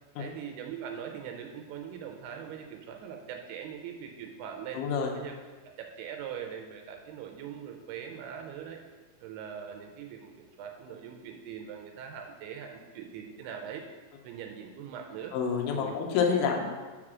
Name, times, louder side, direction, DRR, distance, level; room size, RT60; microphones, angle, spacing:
voice 1, 0.2-4.8 5.1-5.3 5.6-8.8 9.2-13.9 14.2-15.4 15.7-15.9, right 8 dB, 85° right, 3 dB, 2.6 m, -41 dB
voice 2, 4.7-5.1 15.3-16.6, left 6 dB, 85° left, 1 dB, 1.9 m, -27 dB
4.9 x 4.8 x 6.0 m, 1.4 s
omnidirectional pair, 4.5 m